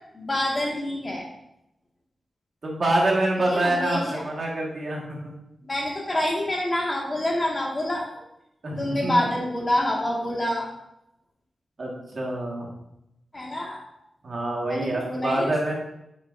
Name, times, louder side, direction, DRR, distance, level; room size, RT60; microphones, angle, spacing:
voice 1, 0.1-1.3 3.5-4.2 5.6-8.1 8.8-10.7 13.3-14.0 14.7-15.7, left 1 dB, 30° left, -2 dB, 1.8 m, -27 dB
voice 2, 2.6-5.3 8.6-9.2 11.8-12.7 14.2-15.7, right 1 dB, 55° right, -2 dB, 1.7 m, -26 dB
6.8 x 6.5 x 2.6 m, 0.81 s
wide cardioid pair, 105°, 0 cm